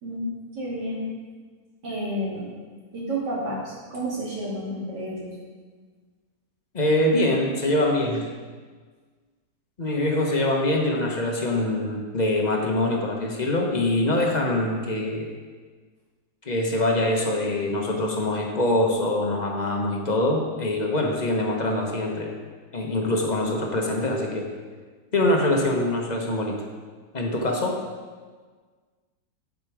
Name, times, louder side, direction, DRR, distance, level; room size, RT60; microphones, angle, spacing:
voice 1, 0.0-1.1 1.8-2.5 2.9-5.4, right 1 dB, 70° right, -5 dB, 3.0 m, -31 dB
voice 2, 6.7-8.3 9.8-15.3 16.4-22.3 22.7-24.5 25.1-26.6 27.1-27.8, left 1 dB, 30° left, 1 dB, 1.0 m, -24 dB
9.0 x 7.6 x 4.9 m, 1.5 s
omnidirectional pair, 1.9 m